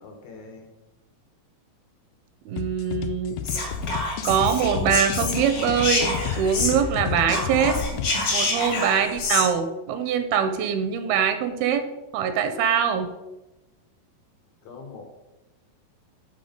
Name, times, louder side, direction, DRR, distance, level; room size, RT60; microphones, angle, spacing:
voice 1, 0.0-0.7 8.4-8.9 14.6-15.1, left 4 dB, 70° left, 2 dB, 1.8 m, -43 dB
voice 2, 2.5-3.4 4.2-7.8 8.3-11.8 12.1-13.1, right 8 dB, 85° right, 8 dB, 2.4 m, -23 dB
sound 1, 2.6-8.1, left 7 dB, 90° left, 1.9 m, -31 dB
Whispering, 3.4-7.0 7.2-9.5, left 3 dB, 50° left, 2.0 m, -27 dB
8.5 x 3.9 x 5.0 m, 1.0 s
omnidirectional pair, 4.4 m